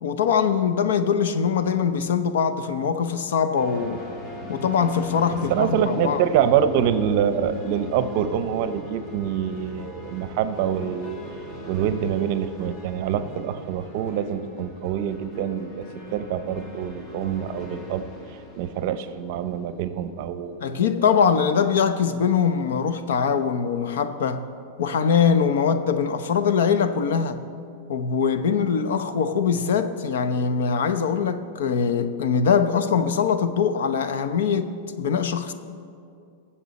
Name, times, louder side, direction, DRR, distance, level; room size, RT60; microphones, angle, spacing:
voice 1, 0.0-4.0 4.5-6.2 20.6-24.4 24.8-27.4 27.9-35.5, left 6 dB, 80° left, 10 dB, 0.7 m, -22 dB
sound 1, 3.5-20.4, left 1 dB, 25° left, 1.3 m, -40 dB
voice 2, 5.5-11.2 11.6-21.2, right 9 dB, 50° right, 11 dB, 0.7 m, -25 dB
19.0 x 7.5 x 4.1 m, 2.4 s
supercardioid pair, 160°, 0 cm